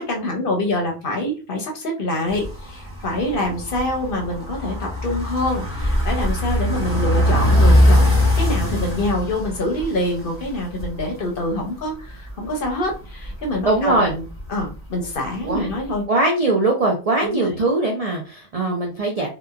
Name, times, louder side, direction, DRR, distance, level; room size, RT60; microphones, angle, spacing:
voice 1, 0.0-14.2 14.5-16.1 17.2-17.6, left 1 dB, 55° left, 1 dB, 0.7 m, -26 dB
sound 1, 2.3-11.2 11.5-11.6 11.9-13.7 14.1-14.8 15.0-15.1 15.7-15.8, left 1 dB, 20° left, 0.4 m, -21 dB
voice 2, 13.7-14.1 15.4-15.7 16.1-19.3, right 2 dB, 55° right, 0 dB, 0.4 m, -20 dB
2.8 x 2.2 x 2.3 m, 0.34 s
omnidirectional pair, 1.2 m